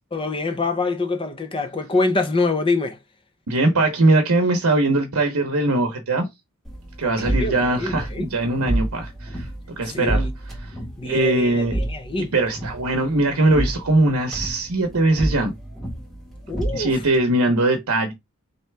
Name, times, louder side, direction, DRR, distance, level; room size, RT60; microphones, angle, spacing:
voice 1, 0.1-3.0 7.0-8.3 9.8-10.3 11.0-12.3 16.5-17.0, left 3 dB, 25° left, 0.8 m, -25 dB
voice 2, 3.5-6.3 7.0-9.5 9.8-10.3 11.0-11.7 12.2-15.5 16.7-18.1, right 2 dB, 70° right, 0.9 m, -21 dB
sound 1, 6.6-17.2, right 1 dB, ahead, 1.6 m, -30 dB
4.2 x 3.3 x 3.3 m
head